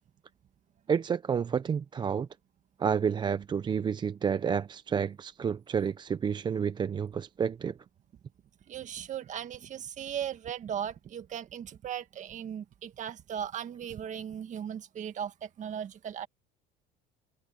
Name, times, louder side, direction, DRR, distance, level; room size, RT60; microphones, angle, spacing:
voice 1, 0.9-2.3 2.8-7.8, right 7 dB, 25° right, 0.5 m, -30 dB
voice 2, 8.7-16.3, right 9 dB, 40° right, 1.7 m, -37 dB
cardioid pair, 125°, 19 cm